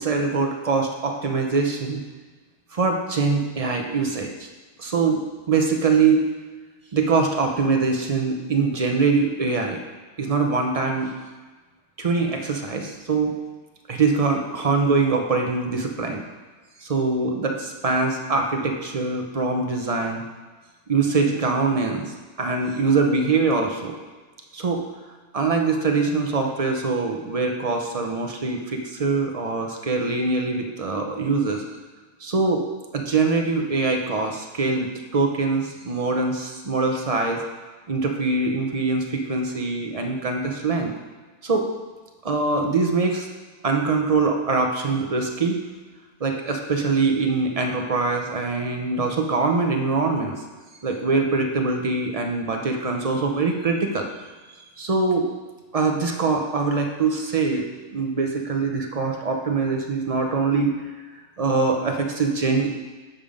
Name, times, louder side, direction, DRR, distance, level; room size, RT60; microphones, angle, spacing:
voice 1, 0.0-2.0 2.7-4.5 4.8-5.2 5.5-6.3 6.9-9.8 10.2-11.1 12.0-13.3 13.9-16.2 16.8-20.2 20.9-22.1 22.4-23.9 24.5-24.8 25.3-31.6 32.2-32.6 32.9-34.9 35.1-37.4 37.9-40.9 41.4-41.7 42.2-43.3 43.6-45.6 46.2-50.4 50.8-54.1 54.8-55.3 55.7-57.7 57.9-60.7 61.4-62.7, right 4 dB, 40° right, 3 dB, 0.5 m, -23 dB
7.3 x 5.3 x 5.1 m, 1.3 s
omnidirectional pair, 1.6 m